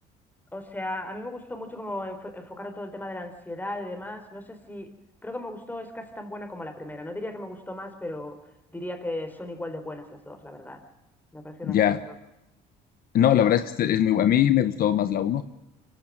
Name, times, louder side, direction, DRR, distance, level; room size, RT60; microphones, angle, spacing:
voice 1, 0.5-4.9 5.2-8.4 8.7-10.8 11.3-11.9, left 1 dB, 10° left, 7 dB, 4.3 m, -36 dB
voice 2, 11.6-12.0 13.1-15.4, left 10 dB, 60° left, 11 dB, 1.2 m, -21 dB
25.0 x 15.5 x 8.7 m, 0.92 s
cardioid pair, 110°, 17 cm